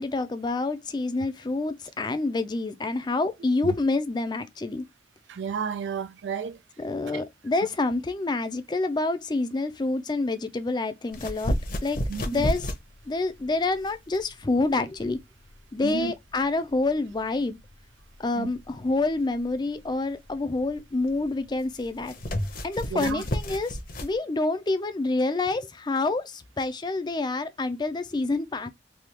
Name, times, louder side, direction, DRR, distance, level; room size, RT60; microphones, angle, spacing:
voice 1, 0.0-4.8 6.8-11.6 11.8-12.0 12.3-12.7 13.1-15.2 15.7-17.6 18.2-22.1 22.6-28.7, left 3 dB, 25° left, 0.4 m, -27 dB
voice 2, 5.3-6.6 12.1-12.5 15.8-16.1 18.3-18.5 22.9-23.2, right 6 dB, 85° right, 0.4 m, -32 dB
sound 1, 11.1-24.1, equal, 50° left, 0.8 m, -34 dB
3.4 x 2.3 x 2.9 m
head